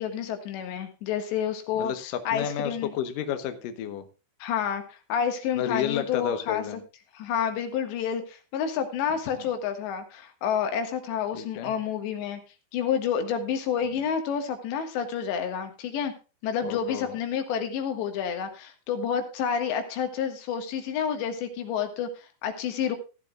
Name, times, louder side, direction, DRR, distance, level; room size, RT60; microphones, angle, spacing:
voice 1, 0.0-1.9 2.3-2.9 4.4-6.6 7.1-12.4 12.7-16.1 16.4-23.0, left 7 dB, 90° left, 7 dB, 3.9 m, -29 dB
voice 2, 1.8-4.0 5.6-6.8 9.4-9.5 11.3-11.7 16.6-17.2, left 9 dB, 65° left, 9 dB, 2.3 m, -31 dB
15.5 x 12.0 x 2.4 m, 0.32 s
omnidirectional pair, 4.9 m